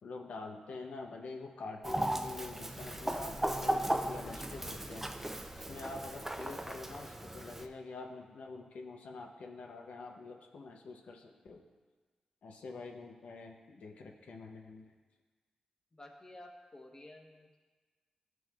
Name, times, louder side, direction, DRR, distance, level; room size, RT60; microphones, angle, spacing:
voice 1, 0.0-5.1 5.6-11.6 12.4-14.8, left 3 dB, 90° left, 1 dB, 0.6 m, -46 dB
Chicken rooster, 1.8-7.7, right 1 dB, 15° right, 0.5 m, -36 dB
voice 2, 15.9-17.6, left 1 dB, 30° left, 1 dB, 1.0 m, -52 dB
13.0 x 6.1 x 2.3 m, 1.4 s
wide cardioid pair, 95°, 2 cm